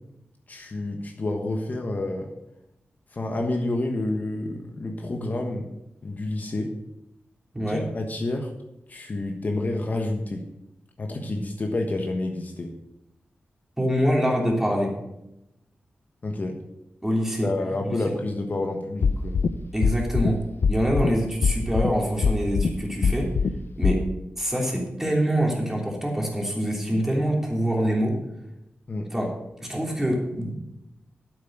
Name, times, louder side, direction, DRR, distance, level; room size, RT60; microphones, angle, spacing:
voice 1, 0.5-2.3 3.1-5.7 6.0-6.7 7.7-8.5 8.9-10.4 11.0-12.7 16.2-16.6 17.4-19.4 28.9-29.1, left 2 dB, 45° left, 2 dB, 1.3 m, -29 dB
voice 2, 13.8-14.9 17.0-17.5 17.8-18.0 19.7-20.4 20.7-23.3 23.8-24.1 24.4-28.2 29.1-29.3 29.6-30.5, equal, 10° right, -1 dB, 3.2 m, -25 dB
sound 1, 19.0-19.5 19.8-20.3 20.6-21.1 21.4-21.9 22.2-22.7 23.0-23.5 23.8-23.9, left 5 dB, 75° left, 0.6 m, -21 dB
9.6 x 8.0 x 6.4 m, 0.87 s
wide cardioid pair, 85°, 4 cm